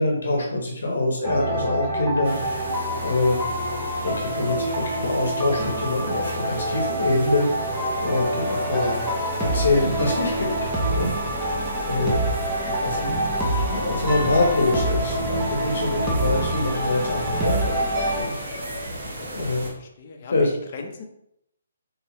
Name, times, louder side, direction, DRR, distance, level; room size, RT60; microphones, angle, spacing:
voice 1, 0.0-2.7 3.0-3.4 4.0-7.7 8.0-9.0 9.4-10.5 10.9-11.1 11.9-12.2 12.8-13.1 13.7-17.8 18.2-18.3 19.3-19.7 20.3-20.5, left 2 dB, 75° left, -1 dB, 0.8 m, -24 dB
sound 1, 1.2-18.2, right 1 dB, 10° right, 0.6 m, -27 dB
sound 2, 1.5-3.2 5.6-7.3 10.0-11.5 14.1-15.7 17.9-18.8, left 1 dB, 30° right, 1.4 m, -37 dB
sound 3, 2.2-19.7, right 1 dB, 50° right, 1.2 m, -35 dB
voice 2, 12.5-13.2 18.4-18.7 19.7-21.0, left 3 dB, 40° left, 3 dB, 0.6 m, -40 dB
3.2 x 2.9 x 2.9 m, 0.77 s
hypercardioid pair, 160°, 0 cm